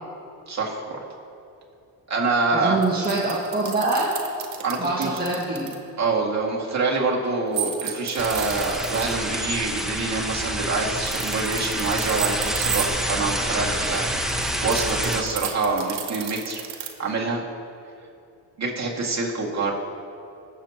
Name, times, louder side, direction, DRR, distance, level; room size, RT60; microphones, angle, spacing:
voice 1, 0.5-1.0 2.1-2.8 4.6-5.2 6.0-14.1 14.6-16.6 17.0-17.4 18.6-19.7, right 3 dB, 35° right, -2 dB, 2.4 m, -26 dB
voice 2, 2.5-4.2 4.8-5.7, right 2 dB, 20° right, -5 dB, 1.7 m, -25 dB
sound 1, 2.8-5.8 7.5-9.2 10.9-12.9 13.8-16.9, right 10 dB, 85° right, 1.3 m, -32 dB
sound 2, 8.2-15.2, equal, ahead, 1.0 m, -27 dB
22.0 x 7.4 x 3.1 m, 2.6 s
supercardioid pair, 85°, 44 cm